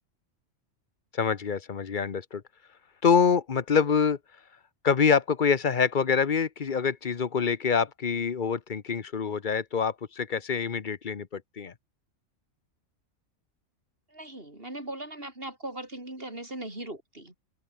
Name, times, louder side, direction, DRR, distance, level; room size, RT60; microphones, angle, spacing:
voice 1, 1.1-2.4 3.0-4.2 4.8-11.7, left 6 dB, 40° left, 1.0 m, -25 dB
voice 2, 14.1-17.3, right 1 dB, 45° right, 6.6 m, -39 dB
omnidirectional pair, 1.3 m